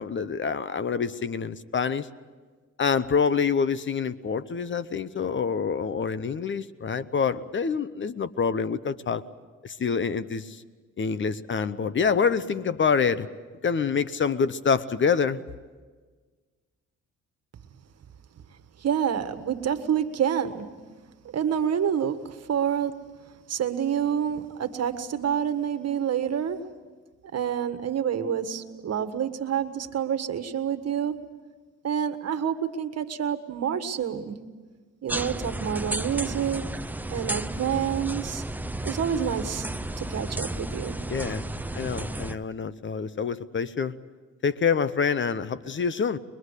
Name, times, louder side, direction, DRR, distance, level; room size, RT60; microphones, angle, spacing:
voice 1, 0.0-2.1 2.8-9.2 9.6-10.6 11.0-13.3 13.6-15.4 41.1-41.4 41.7-43.9 44.4-46.2, left 6 dB, 40° left, 16 dB, 0.9 m, -26 dB
voice 2, 18.8-20.7 21.2-23.2 23.5-26.7 27.3-31.3 31.8-34.4 35.0-36.6 37.1-38.4 38.8-39.7 40.0-41.0, right 8 dB, 55° right, 9 dB, 1.6 m, -28 dB
sound 1, 35.1-42.4, right 1 dB, 5° right, 0.7 m, -33 dB
22.5 x 22.5 x 8.2 m, 1.4 s
cardioid pair, 90°, 30 cm